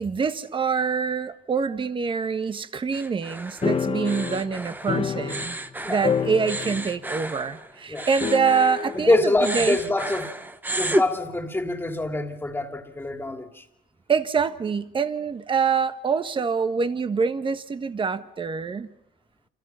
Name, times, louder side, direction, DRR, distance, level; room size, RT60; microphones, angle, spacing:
voice 1, 0.0-5.6 5.9-9.8 14.1-18.9, right 5 dB, 30° right, 1.5 m, -25 dB
sound 1, 2.9-9.1 9.4-11.1, right 1 dB, 10° right, 1.3 m, -32 dB
sound 2, 3.6-5.7 6.0-7.0 7.3-7.4 8.2-9.0, left 7 dB, 35° left, 1.3 m, -28 dB
voice 2, 8.9-10.4 10.7-13.6, left 2 dB, 15° left, 2.8 m, -25 dB
28.5 x 28.0 x 5.8 m
cardioid pair, 110°, 17 cm